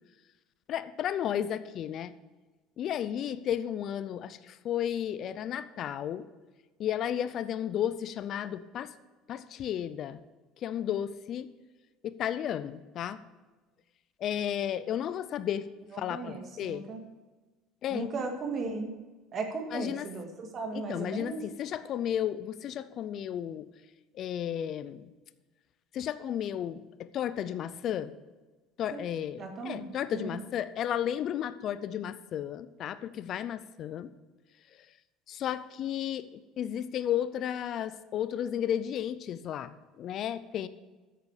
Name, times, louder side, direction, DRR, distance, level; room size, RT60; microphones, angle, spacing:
voice 1, 0.7-2.1 2.8-6.3 6.8-8.9 9.3-10.2 10.6-11.5 12.0-13.2 14.2-15.7 16.0-16.8 17.8-18.1 19.7-20.1 20.7-23.7 24.2-25.0 25.9-28.1 28.8-34.1 35.3-36.3 36.6-40.7, left 10 dB, 45° left, 14 dB, 0.4 m, -33 dB
voice 2, 15.9-17.0 17.9-18.9 19.3-21.5 28.9-29.0 29.4-30.4, right 3 dB, 35° right, 4 dB, 1.8 m, -36 dB
9.1 x 6.6 x 7.1 m, 1.2 s
cardioid pair, 130°, 0 cm